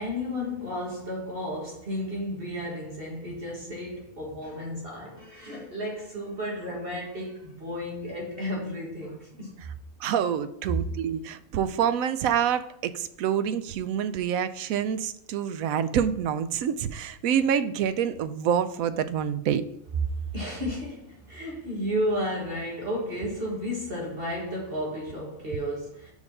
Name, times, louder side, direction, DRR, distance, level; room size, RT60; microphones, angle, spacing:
voice 1, 0.0-9.6 20.2-26.1, equal, 40° right, 1.9 m, -33 dB
voice 2, 10.0-19.6, right 8 dB, 80° right, 1.0 m, -27 dB
5.1 x 4.8 x 5.3 m
omnidirectional pair, 1.5 m